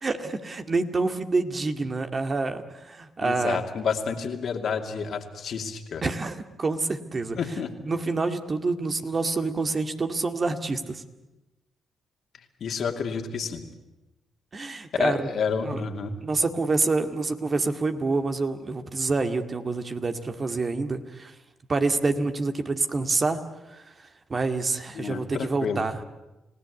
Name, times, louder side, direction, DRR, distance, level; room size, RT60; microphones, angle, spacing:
voice 1, 0.0-3.6 6.0-7.4 7.8-11.0 14.5-15.3 15.6-15.8 16.2-21.3 21.7-23.4 23.7-23.8 24.3-26.0, right 3 dB, 40° right, 7 dB, 2.1 m, -27 dB
voice 2, 3.2-6.0 7.3-7.9 12.6-13.6 14.9-16.2 24.9-25.8, left 6 dB, 65° left, 5 dB, 2.5 m, -29 dB
29.5 x 17.0 x 8.3 m, 1.0 s
supercardioid pair, 50°, 0 cm